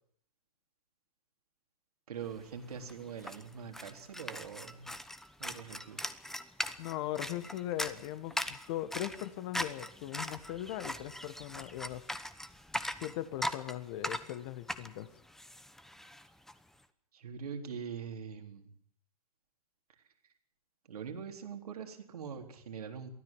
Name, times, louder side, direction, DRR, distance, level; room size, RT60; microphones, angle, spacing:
voice 1, 2.1-4.9 5.4-6.1 17.1-18.7 20.9-23.1, right 7 dB, 85° right, 4 dB, 3.9 m, -43 dB
sound 1, 2.4-2.5 2.7-16.5, left 1 dB, ahead, 1.0 m, -40 dB
voice 2, 6.8-12.1 12.9-15.1, left 13 dB, 50° left, 13 dB, 1.6 m, -39 dB
23.5 x 15.5 x 7.4 m, 0.62 s
hypercardioid pair, 135°, 19 cm